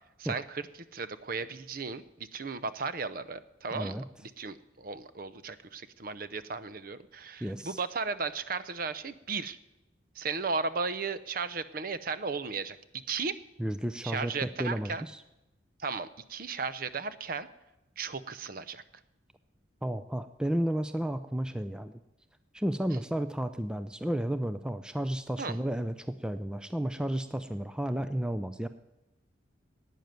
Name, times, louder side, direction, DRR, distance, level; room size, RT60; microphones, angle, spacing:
voice 1, 0.2-0.7 0.9-9.6 10.2-13.4 14.0-15.0 15.8-17.5 18.0-18.8 25.4-25.5, right 4 dB, 50° right, 14 dB, 0.6 m, -35 dB
voice 2, 3.7-4.0 7.4-7.8 13.6-15.2 19.8-21.9 22.5-28.7, right 1 dB, 5° right, 11 dB, 0.4 m, -32 dB
12.0 x 9.2 x 9.3 m, 0.96 s
head